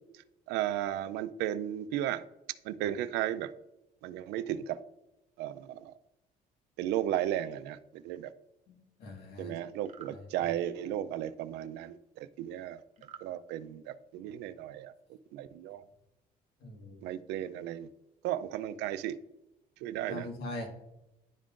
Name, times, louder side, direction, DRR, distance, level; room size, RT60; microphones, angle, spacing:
voice 1, 0.5-2.2 2.6-3.5 4.0-4.8 5.4-5.9 6.8-8.3 9.4-12.8 13.2-15.8 17.0-17.9 18.2-19.2 19.8-20.3, right 12 dB, 85° right, 13 dB, 0.4 m, -35 dB
voice 2, 8.7-9.6 10.1-10.5 16.6-17.1 20.1-20.7, left 1 dB, 75° left, 2 dB, 1.6 m, -42 dB
sound 1, 9.8-10.2 13.0-13.3, right 8 dB, 45° right, 0.7 m, -50 dB
11.0 x 3.6 x 2.4 m, 0.92 s
cardioid pair, 110°, 17 cm